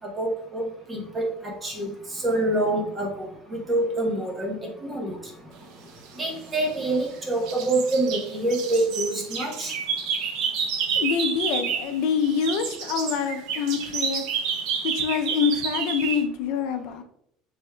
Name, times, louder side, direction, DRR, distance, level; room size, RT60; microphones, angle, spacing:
voice 1, 0.2-1.3 1.6-5.2 6.2-9.7, right 2 dB, 15° right, 0 dB, 0.9 m, -26 dB
sound 1, 6.3-7.1 7.5-12.0 12.2-16.2, right 6 dB, 60° right, 0.6 m, -29 dB
voice 2, 11.0-14.2 14.8-17.0, left 7 dB, 65° left, 7 dB, 0.5 m, -26 dB
6.0 x 3.4 x 2.3 m, 0.72 s
cardioid pair, 155°, 0 cm